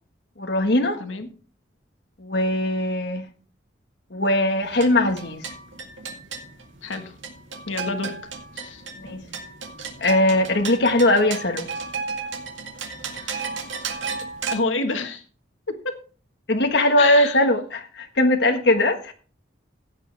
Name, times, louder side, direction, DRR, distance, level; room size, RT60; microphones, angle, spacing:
voice 1, 0.4-1.0 2.2-3.3 4.1-5.5 9.0-9.2 10.0-11.7 16.5-19.1, left 1 dB, 60° left, 1.3 m, -20 dB
sound 1, 4.6-14.5, right 5 dB, 80° right, 2.1 m, -34 dB
voice 2, 6.8-7.1 7.7-8.1 8.5-8.8 13.2-13.3 14.5-15.2 15.7-16.0 17.0-17.4, left 3 dB, 90° left, 1.4 m, -28 dB
15.5 x 8.6 x 3.4 m
head